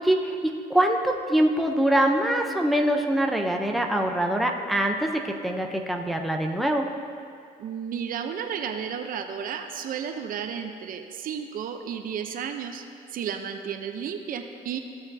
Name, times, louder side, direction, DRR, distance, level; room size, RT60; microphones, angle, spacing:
voice 1, 0.0-6.9, right 1 dB, ahead, 2 dB, 0.7 m, -24 dB
voice 2, 7.6-12.8 13.1-14.8, right 7 dB, 55° right, 6 dB, 0.6 m, -33 dB
15.0 x 6.5 x 2.7 m, 2.3 s
cardioid pair, 110°, 17 cm